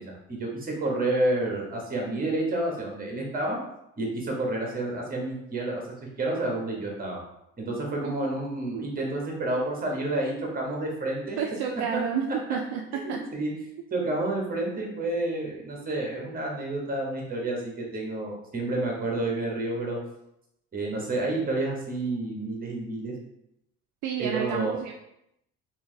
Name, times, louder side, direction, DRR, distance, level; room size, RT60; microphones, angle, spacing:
voice 1, 0.0-3.6 4.0-5.8 6.2-7.2 7.6-11.4 11.9-12.0 12.9-13.5 13.9-20.0 20.7-23.1 24.2-24.8, right 2 dB, 30° right, -1 dB, 1.3 m, -29 dB
voice 2, 11.4-12.8 13.1-13.2 24.0-24.9, right 8 dB, 65° right, 2 dB, 0.5 m, -30 dB
3.2 x 2.7 x 3.2 m, 0.80 s
supercardioid pair, 90°, 31 cm